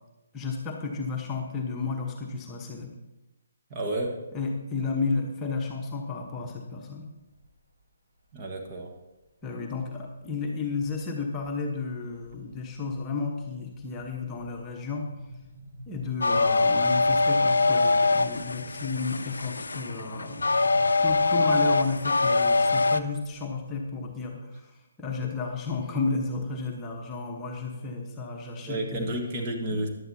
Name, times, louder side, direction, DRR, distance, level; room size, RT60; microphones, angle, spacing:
voice 1, 0.3-2.9 4.3-7.1 9.4-15.1 15.9-20.4 21.0-24.7 25.0-29.2 29.7-29.8, left 4 dB, 15° left, 0 dB, 1.2 m, -32 dB
voice 2, 3.7-4.2 8.3-8.9 28.6-29.9, right 1 dB, 30° right, 2 dB, 1.5 m, -31 dB
sound 1, 7.2-7.7 8.2-8.8 9.4-10.3 10.7-11.0 11.3-23.9, left 1 dB, 50° right, 3.3 m, -48 dB
sound 2, 16.2-23.0, left 3 dB, 65° left, 0.5 m, -23 dB
15.0 x 11.0 x 2.8 m, 1.0 s
figure-of-eight pair, 135°, 0 cm